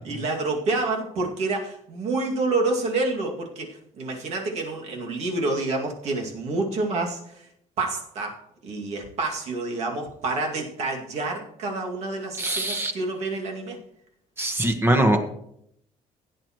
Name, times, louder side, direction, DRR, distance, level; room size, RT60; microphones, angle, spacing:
voice 1, 0.0-7.4 7.8-13.8, right 3 dB, 55° right, 1 dB, 2.3 m, -28 dB
voice 2, 12.4-12.9 14.4-15.2, right 1 dB, 15° right, 6 dB, 1.4 m, -22 dB
16.0 x 9.4 x 3.1 m, 0.73 s
cardioid pair, 145°, 13 cm